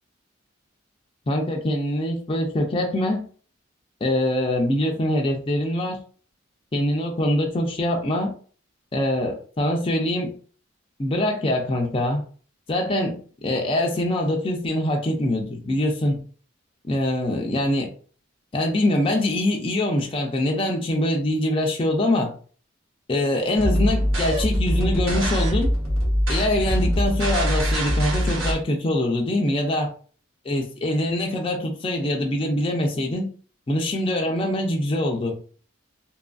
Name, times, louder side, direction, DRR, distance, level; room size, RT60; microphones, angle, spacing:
voice 1, 1.3-3.3 4.0-6.0 6.7-8.3 8.9-10.3 11.0-12.2 12.7-13.2 13.4-16.2 16.8-17.9 18.5-22.3 23.1-25.7 26.3-29.9 30.4-33.3 33.7-35.4, left 1 dB, 25° left, 1 dB, 0.4 m, -23 dB
sound 1, 23.6-28.5, equal, 85° right, 0.9 m, -23 dB
2.7 x 2.5 x 2.3 m, 0.42 s
head